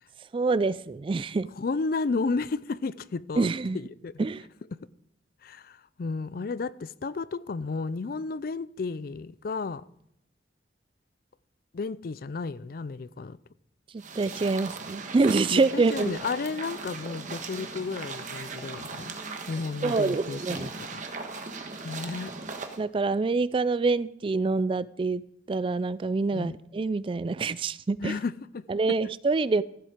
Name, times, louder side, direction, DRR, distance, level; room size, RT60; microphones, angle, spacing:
voice 1, 0.3-1.5 3.4-3.8 4.2-4.4 14.2-16.2 19.8-20.7 22.8-25.2 25.5-28.2 28.7-29.6, right 3 dB, 30° right, 0.3 m, -26 dB
voice 2, 1.6-3.5 3.7-4.2 4.7-4.8 5.4-9.8 11.7-13.4 15.5-19.1 19.5-21.0 21.8-22.3 26.3-26.6 28.0-29.0, left 4 dB, 55° left, 0.4 m, -33 dB
sound 1, 14.0-22.8, right 4 dB, 45° right, 1.3 m, -38 dB
15.0 x 7.6 x 5.1 m
head